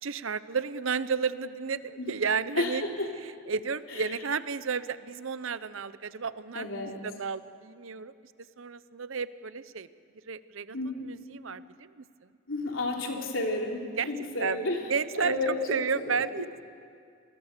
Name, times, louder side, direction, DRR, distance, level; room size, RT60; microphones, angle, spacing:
voice 1, 0.0-2.8 3.2-8.1 8.6-9.9 10.3-12.0 14.0-14.6 14.9-16.6, right 5 dB, 75° right, 15 dB, 0.7 m, -32 dB
voice 2, 2.6-3.1 6.5-7.0 10.7-11.1 12.5-14.8 15.2-16.2, left 2 dB, 75° left, 1 dB, 3.5 m, -31 dB
29.5 x 20.5 x 6.8 m, 2.2 s
head